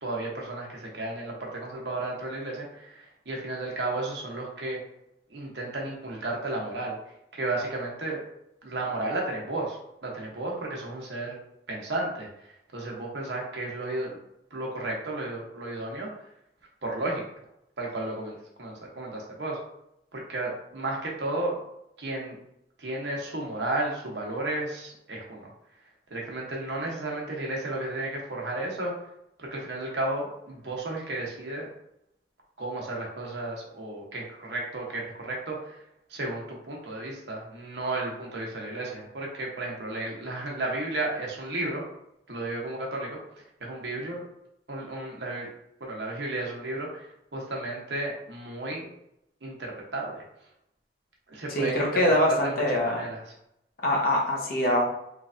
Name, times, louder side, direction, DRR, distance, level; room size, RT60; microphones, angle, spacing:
voice 1, 0.0-4.8 5.3-8.2 8.6-11.4 11.7-14.2 14.5-16.3 16.8-17.2 17.8-19.6 20.1-21.6 22.0-22.4 22.8-25.5 26.1-28.9 29.4-31.7 32.6-35.8 36.1-41.8 42.3-43.2 43.6-44.2 44.7-45.5 45.8-48.9 49.4-50.2 51.3-51.9 52.3-53.3, right 2 dB, 70° right, -2 dB, 0.9 m, -33 dB
voice 2, 51.5-53.0 53.8-54.8, left 1 dB, 55° left, -1 dB, 0.8 m, -24 dB
3.2 x 3.2 x 2.5 m, 0.80 s
head